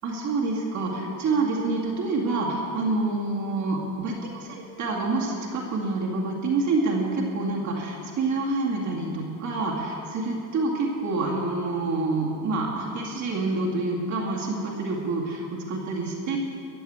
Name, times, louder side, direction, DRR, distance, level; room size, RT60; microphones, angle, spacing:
voice 1, 0.0-16.4, right 3 dB, 40° right, -3 dB, 2.3 m, -27 dB
14.5 x 7.8 x 8.8 m, 2.7 s
cardioid pair, 145°, 43 cm